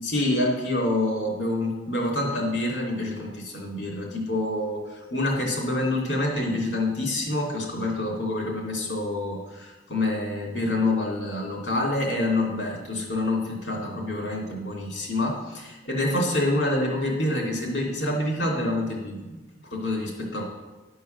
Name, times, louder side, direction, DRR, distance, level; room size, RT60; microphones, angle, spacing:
voice 1, 0.0-19.4 19.7-20.4, left 1 dB, 85° left, -1 dB, 2.7 m, -27 dB
11.0 x 4.7 x 6.6 m, 1.2 s
head